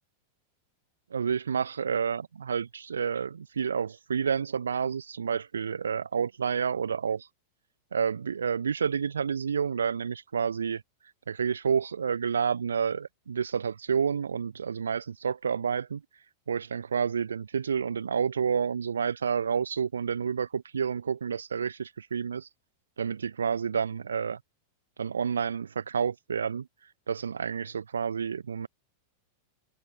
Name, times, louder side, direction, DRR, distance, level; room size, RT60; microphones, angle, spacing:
voice 1, 1.1-7.3 7.9-10.8 11.3-16.0 16.5-22.5 23.0-24.4 25.0-26.7 27.1-28.7, right 6 dB, 70° right, 5.4 m, -29 dB
figure-of-eight pair, 90°, 0 cm